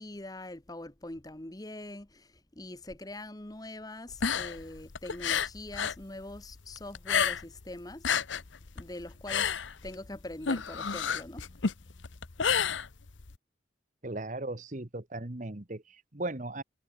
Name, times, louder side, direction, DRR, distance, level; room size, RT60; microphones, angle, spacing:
voice 1, 0.0-8.1 8.7-9.5 9.8-11.6, left 1 dB, 20° left, 1.1 m, -43 dB
sound 1, 4.1-6.0 6.3-7.6 7.9-13.3, left 7 dB, 85° left, 1.0 m, -30 dB
voice 2, 14.0-16.6, right 2 dB, 40° right, 1.3 m, -37 dB
head